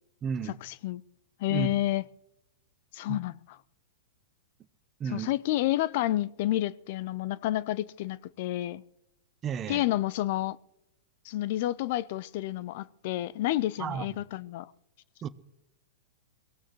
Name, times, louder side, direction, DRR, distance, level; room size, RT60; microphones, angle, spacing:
voice 1, 0.2-0.6 1.5-1.8 3.1-3.2 5.0-5.3 9.4-9.8 13.8-14.2 15.2-15.3, right 7 dB, 25° right, 0.8 m, -33 dB
voice 2, 1.4-2.0 2.9-3.3 5.1-8.8 9.7-10.6 11.3-14.7, left 15 dB, 55° left, 0.5 m, -29 dB
22.5 x 16.0 x 3.1 m
hypercardioid pair, 125°, 0 cm